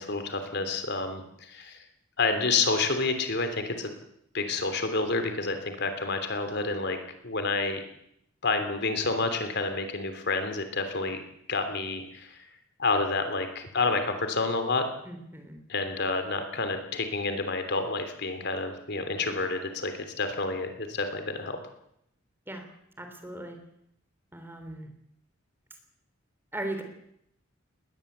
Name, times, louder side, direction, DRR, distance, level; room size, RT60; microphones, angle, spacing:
voice 1, 0.0-1.8 2.2-3.9 4.3-7.0 7.2-7.8 8.4-11.2 11.5-12.5 12.8-14.9 15.7-21.6, left 3 dB, 55° left, 7 dB, 3.2 m, -29 dB
voice 2, 15.1-15.6 22.5-22.6 23.0-23.6 24.3-24.9 26.5-26.8, right 1 dB, 10° right, 5 dB, 3.7 m, -37 dB
20.5 x 19.0 x 8.1 m, 0.77 s
head